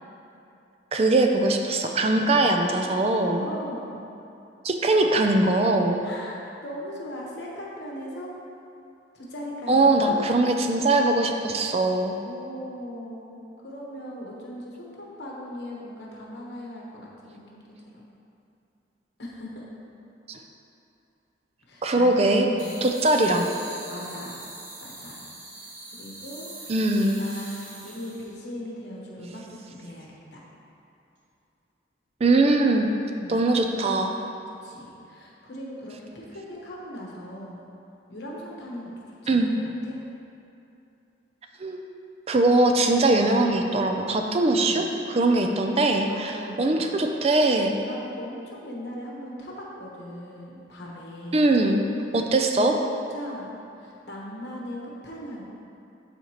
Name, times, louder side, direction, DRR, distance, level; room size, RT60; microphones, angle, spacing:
voice 1, 0.9-3.5 4.6-6.0 9.7-12.2 20.3-20.4 21.8-22.5 22.8-23.5 26.7-27.2 32.2-32.9 33.3-34.2 39.3-39.5 41.6-41.8 42.3-47.8 51.3-51.9 52.1-52.8, right 2 dB, 35° right, 4 dB, 0.4 m, -21 dB
voice 2, 2.3-2.6 3.4-4.0 6.0-8.3 9.1-10.3 12.2-17.7 17.9-18.1 19.2-19.7 21.7-22.9 23.9-24.4 24.8-25.3 25.6-30.4 33.1-33.5 34.6-37.6 38.1-38.9 39.2-39.5 39.8-40.0 44.5-44.9 45.2-45.4 46.1-46.8 47.8-51.6 52.5-52.8 53.1-55.4, equal, 65° left, -3 dB, 1.2 m, -39 dB
sound 1, 22.6-28.3, right 2 dB, 90° right, 1.6 m, -42 dB
12.0 x 4.2 x 3.0 m, 2.7 s
head